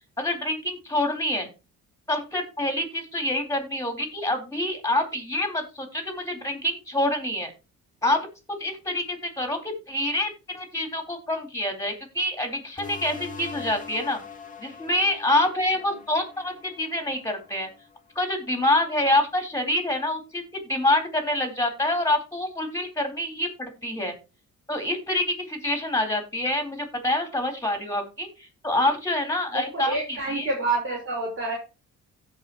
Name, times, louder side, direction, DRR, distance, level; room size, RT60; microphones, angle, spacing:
voice 1, 0.2-1.5 2.1-7.5 8.0-8.2 8.6-14.2 14.6-17.7 18.1-24.2 24.7-30.5, left 1 dB, 10° left, 4 dB, 4.3 m, -26 dB
sound 1, 12.8-18.0, left 4 dB, 25° left, 2.1 m, -42 dB
voice 2, 29.5-31.5, right 2 dB, 45° right, -4 dB, 5.1 m, -28 dB
16.5 x 5.8 x 3.1 m, 0.30 s
cardioid pair, 90°, 30 cm